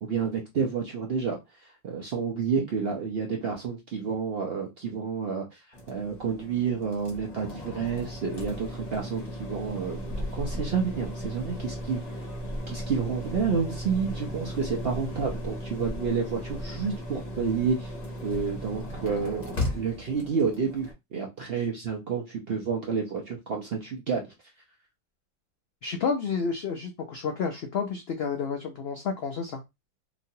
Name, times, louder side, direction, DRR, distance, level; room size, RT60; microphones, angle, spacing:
voice 1, 0.0-12.0 12.7-17.9 18.2-24.3, right 6 dB, 65° right, 0.6 m, -30 dB
sound 1, 5.7-20.9, equal, 35° left, 0.8 m, -36 dB
voice 2, 25.8-29.6, left 5 dB, 85° left, 0.5 m, -30 dB
2.9 x 2.5 x 2.7 m
omnidirectional pair, 1.6 m